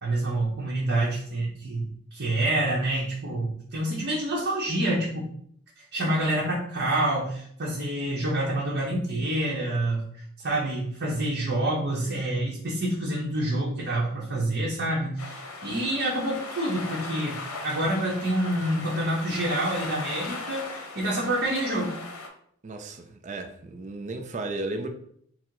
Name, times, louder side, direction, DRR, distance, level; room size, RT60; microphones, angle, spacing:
voice 1, 0.0-5.3 5.8-21.9, right 1 dB, 50° right, -5 dB, 0.8 m, -27 dB
sound 1, 15.2-22.3, left 3 dB, 90° left, 0.7 m, -37 dB
voice 2, 22.6-24.9, right 2 dB, 35° right, 5 dB, 0.4 m, -34 dB
4.5 x 2.0 x 3.8 m, 0.66 s
head